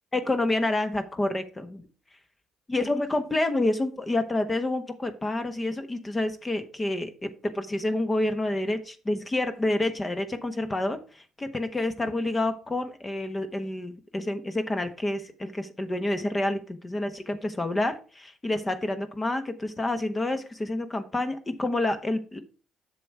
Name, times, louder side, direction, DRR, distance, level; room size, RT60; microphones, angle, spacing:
voice 1, 0.1-1.8 2.7-7.3 7.5-22.4, left 2 dB, 25° left, 9 dB, 1.1 m, -28 dB
7.6 x 6.6 x 4.6 m, 0.36 s
hypercardioid pair, 55°, 0 cm